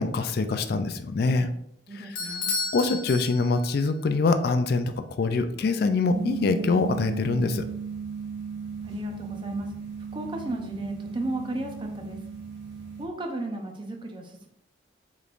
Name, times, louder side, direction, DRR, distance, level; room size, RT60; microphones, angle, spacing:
voice 1, 0.0-1.5 2.7-7.6, left 3 dB, 50° left, 9 dB, 0.3 m, -24 dB
voice 2, 1.9-2.5 8.8-12.2 13.0-14.5, right 1 dB, 25° right, 3 dB, 0.5 m, -34 dB
Bell / Doorbell, 2.2-3.9, left 4 dB, 90° left, 0.9 m, -32 dB
sound 1, 6.1-13.1, right 6 dB, 60° right, 0.8 m, -36 dB
4.9 x 3.1 x 2.5 m, 0.74 s
head